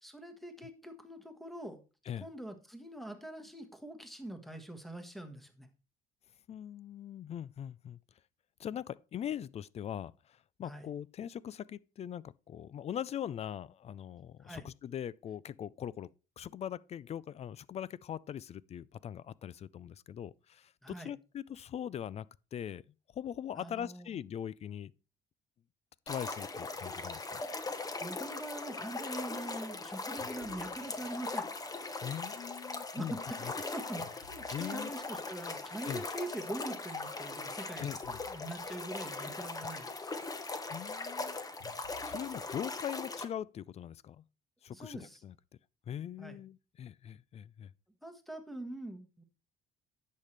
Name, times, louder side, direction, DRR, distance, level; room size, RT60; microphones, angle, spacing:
voice 1, 0.0-1.8 2.2-5.7 10.6-10.9 14.4-14.7 20.8-21.1 23.6-24.1 27.8-31.5 32.9-37.9 38.3-40.2 44.7-45.2 46.2-46.4 48.0-49.2, right 1 dB, ahead, 1.5 m, -44 dB
voice 2, 6.5-8.0 8.6-16.1 16.4-22.3 22.5-22.8 23.1-24.9 26.1-27.4 32.0-33.1 34.5-34.9 35.9-36.0 37.8-38.2 40.7-41.4 42.0-44.2 44.6-45.3 45.9-47.7, left 9 dB, 40° left, 0.4 m, -41 dB
sound 1, 26.1-43.2, left 3 dB, 20° left, 1.1 m, -40 dB
sound 2, 27.3-28.1 28.3-28.5 28.9-31.6 31.8-32.3 32.8-36.2 36.6-42.5, left 6 dB, 85° left, 2.1 m, -60 dB
10.5 x 7.5 x 3.3 m
cardioid pair, 110°, 17 cm